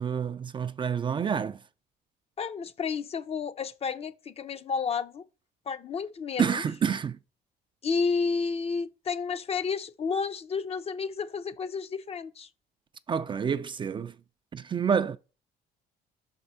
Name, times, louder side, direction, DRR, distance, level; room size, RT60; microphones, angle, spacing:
voice 1, 0.0-1.6 6.4-7.2 13.1-14.1 14.5-15.2, right 7 dB, 30° right, 0.4 m, -28 dB
voice 2, 2.4-5.2 5.7-6.6 7.8-12.5, left 5 dB, 35° left, 0.6 m, -31 dB
5.8 x 4.4 x 5.5 m
cardioid pair, 110°, 17 cm